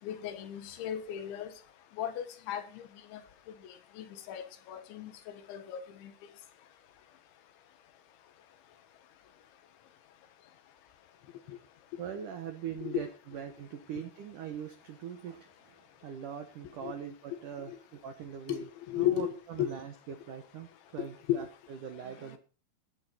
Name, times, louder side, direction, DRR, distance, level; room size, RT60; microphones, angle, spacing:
voice 1, 0.0-1.5 2.0-2.8 3.1-3.2 3.6-5.1 5.5-6.1 11.5-11.6 12.8-13.0 16.8-16.9 17.7-17.8 18.5-19.3 19.6-19.7 21.3-21.4, left 12 dB, 70° left, 10 dB, 3.6 m, -34 dB
voice 2, 12.0-18.7 19.0-22.4, right 8 dB, 75° right, 8 dB, 1.8 m, -42 dB
17.0 x 11.0 x 4.3 m, 0.37 s
omnidirectional pair, 5.7 m